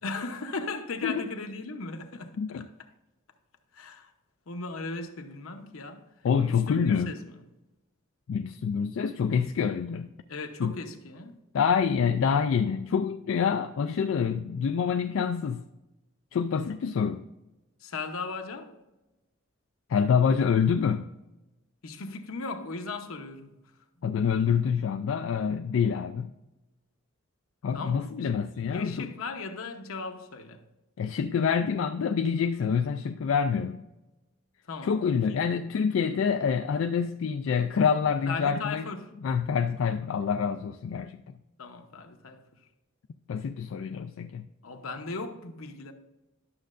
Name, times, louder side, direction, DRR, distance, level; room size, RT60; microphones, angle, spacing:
voice 1, 0.0-2.7 3.7-4.1 4.5-6.1 6.4-7.4 10.3-11.3 17.8-18.7 21.8-23.6 27.7-30.6 34.7-35.0 35.3-35.4 38.2-39.1 41.6-42.4 44.6-45.9, left 3 dB, 90° left, 0.9 m, -37 dB
voice 2, 6.2-7.1 8.3-10.1 10.6-10.7 11.5-15.6 16.3-17.2 19.9-21.1 24.0-26.3 27.6-29.1 31.0-33.8 34.8-38.9 39.2-41.2 43.3-44.5, left 6 dB, 70° left, 0.3 m, -26 dB
11.5 x 6.4 x 2.5 m
head